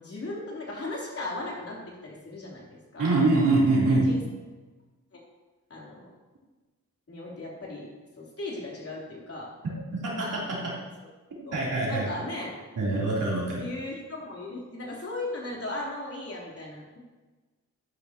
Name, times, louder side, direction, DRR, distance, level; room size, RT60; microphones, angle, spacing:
voice 1, 0.0-3.1 3.8-4.2 5.1-5.2 5.7-6.1 7.1-9.5 11.5-11.6 11.9-12.5 13.6-17.0, left 2 dB, 50° left, -4 dB, 3.7 m, -37 dB
voice 2, 3.0-4.1 9.6-10.8 11.5-12.1 12.8-13.6, right 2 dB, 90° right, -6 dB, 3.7 m, -24 dB
13.5 x 9.8 x 3.0 m, 1.3 s
wide cardioid pair, 110°, 31 cm